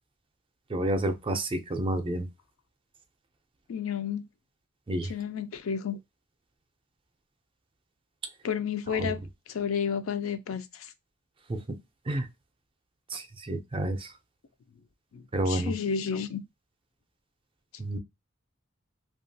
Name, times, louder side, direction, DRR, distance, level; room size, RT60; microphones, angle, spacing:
voice 1, 0.7-2.2 4.9-5.1 9.0-9.1 11.5-11.8 12.1-12.3 13.1-14.1 15.3-15.7 17.8-18.0, right 1 dB, 25° right, 0.4 m, -29 dB
voice 2, 3.7-4.2 5.0-6.0 8.4-9.2 9.5-10.9 15.1-16.4, left 7 dB, 75° left, 0.4 m, -31 dB
2.8 x 2.3 x 2.6 m
head